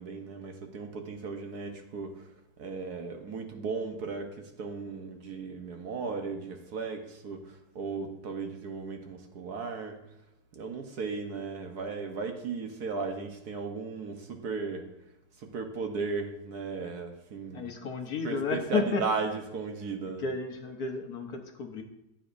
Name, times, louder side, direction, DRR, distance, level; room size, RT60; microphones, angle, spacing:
voice 1, 0.0-2.3 2.6-10.0 10.5-14.9 15.4-17.7 18.1-20.4, right 4 dB, 60° right, 4 dB, 1.4 m, -36 dB
voice 2, 17.5-19.0 20.0-21.8, left 4 dB, 60° left, 4 dB, 1.2 m, -32 dB
14.5 x 9.1 x 2.6 m, 0.88 s
omnidirectional pair, 2.1 m